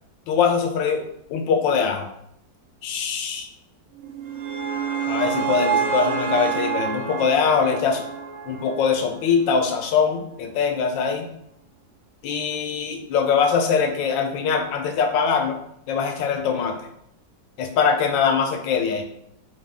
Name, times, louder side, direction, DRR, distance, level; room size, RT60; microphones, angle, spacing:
voice 1, 0.3-2.1 2.8-3.5 5.1-8.0 8.5-11.3 12.2-15.6 15.9-16.9 17.6-19.0, left 6 dB, 85° left, 5 dB, 1.3 m, -22 dB
sound 1, 4.0-9.2, right 7 dB, 70° right, 0.9 m, -27 dB
4.0 x 3.0 x 3.4 m, 0.76 s
omnidirectional pair, 2.0 m